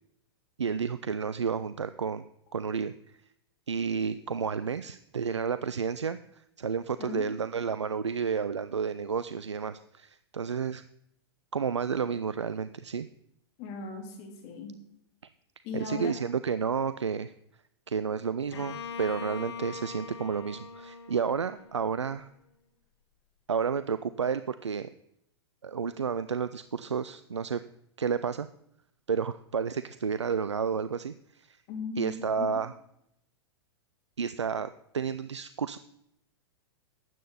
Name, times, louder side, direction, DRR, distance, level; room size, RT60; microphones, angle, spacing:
voice 1, 0.6-2.2 2.5-3.2 3.7-10.8 11.5-13.1 15.7-17.3 17.9-22.3 23.5-24.9 25.6-27.6 28.0-28.5 29.1-31.6 32.0-32.7 34.2-35.8, right 6 dB, 90° right, 14 dB, 0.4 m, -31 dB
voice 2, 13.6-14.7 15.6-16.1 31.7-32.6, left 5 dB, 45° left, 2 dB, 3.3 m, -38 dB
Bowed string instrument, 18.5-22.3, left 5 dB, 70° left, 1.3 m, -42 dB
12.5 x 8.6 x 4.1 m, 0.78 s
hypercardioid pair, 105°, 14 cm